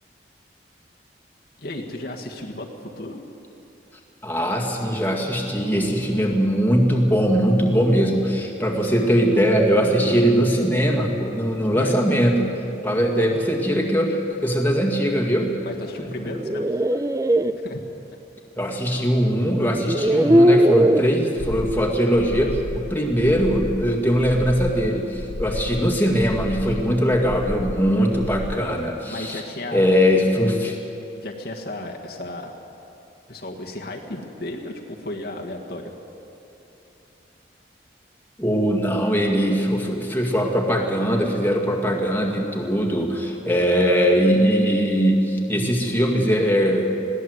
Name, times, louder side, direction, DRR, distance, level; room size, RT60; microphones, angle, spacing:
voice 1, 1.6-2.7 3.0-3.2 8.9-9.0 11.7-11.9 15.6-16.8 17.6-17.8 28.0-28.2 29.1-29.8 31.2-32.6 33.3-35.9, left 1 dB, 55° left, 1 dB, 1.7 m, -34 dB
voice 2, 4.2-12.5 12.8-15.6 16.0-16.1 18.6-29.4 29.7-30.8 38.4-47.0, equal, 10° left, -1 dB, 2.0 m, -21 dB
sound 1, 16.2-17.5 19.0-19.1 19.8-21.1, equal, 20° right, 0.5 m, -18 dB
sound 2, 21.4-28.6, left 2 dB, 75° left, 0.7 m, -33 dB
21.0 x 16.5 x 8.0 m, 3.0 s
head